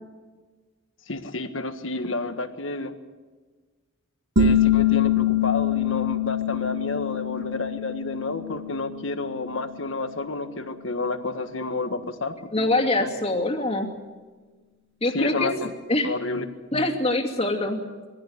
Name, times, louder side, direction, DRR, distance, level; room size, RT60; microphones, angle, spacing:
voice 1, 1.1-2.9 4.4-13.1 15.1-15.7 16.0-16.4 16.7-16.9, left 2 dB, 70° left, 8 dB, 1.6 m, -30 dB
sound 1, 4.4-9.8, left 7 dB, 55° right, 1.1 m, -24 dB
voice 2, 12.5-13.9 15.0-15.5 15.9-16.1 16.7-17.8, left 2 dB, 30° left, 1 dB, 2.6 m, -24 dB
22.0 x 15.5 x 9.6 m, 1.4 s
head